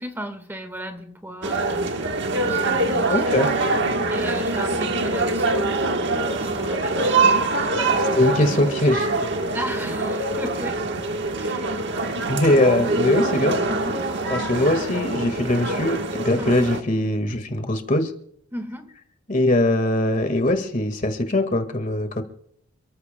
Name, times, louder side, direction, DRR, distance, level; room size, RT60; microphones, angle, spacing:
voice 1, 0.0-3.5 4.1-5.7 6.3-8.2 9.5-10.9 11.3-11.8 13.7-14.0 16.4-16.6 18.5-18.9, equal, 10° right, 7 dB, 1.5 m, -35 dB
sound 1, 1.4-16.8, right 2 dB, 55° right, 1.3 m, -24 dB
voice 2, 3.1-3.5 8.2-9.1 12.3-13.6 14.3-18.1 19.3-22.2, left 1 dB, 40° left, 8 dB, 1.7 m, -21 dB
28.5 x 14.5 x 2.2 m, 0.68 s
head